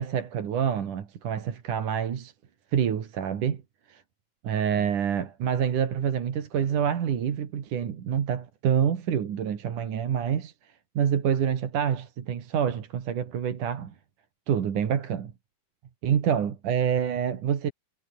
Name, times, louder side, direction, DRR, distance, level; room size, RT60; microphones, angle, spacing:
voice 1, 0.0-2.3 2.7-3.6 3.9-4.0 4.4-13.9 14.5-15.3 16.0-17.7, right 8 dB, 65° right, 3.8 m, -27 dB
omnidirectional pair, 3.9 m